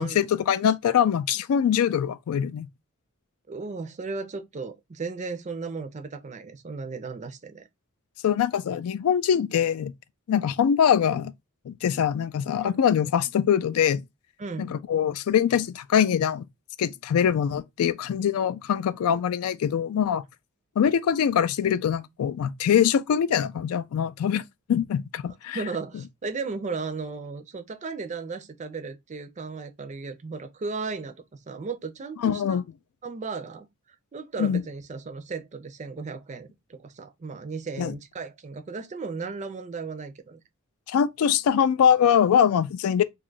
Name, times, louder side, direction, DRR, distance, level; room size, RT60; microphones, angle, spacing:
voice 1, 0.0-2.7 8.2-9.9 10.3-11.3 11.7-14.0 14.6-16.4 16.8-20.2 20.8-24.4 24.7-25.6 32.2-32.6 34.4-34.6 37.8-38.0 40.9-43.0, left 8 dB, 75° left, 0.3 m, -23 dB
voice 2, 3.5-7.7 12.5-12.7 14.4-14.7 25.5-32.6 33.0-33.7 34.1-40.4, right 4 dB, 35° right, 0.4 m, -35 dB
2.8 x 2.3 x 3.8 m
head